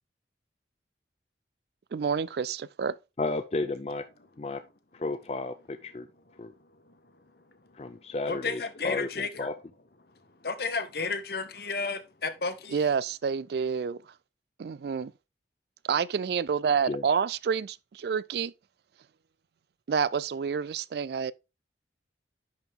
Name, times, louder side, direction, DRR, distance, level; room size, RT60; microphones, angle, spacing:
voice 1, 1.9-3.0 12.7-14.0 14.6-15.1 15.8-18.5 19.9-21.3, right 6 dB, 65° right, 0.3 m, -28 dB
voice 2, 3.2-4.0 4.4-4.6 4.9-6.1 6.4-6.5 7.8-9.5 16.9-17.0, left 3 dB, 35° left, 0.4 m, -33 dB
voice 3, 8.3-9.5 10.4-12.8, left 4 dB, 60° left, 1.1 m, -32 dB
10.5 x 4.7 x 3.6 m
head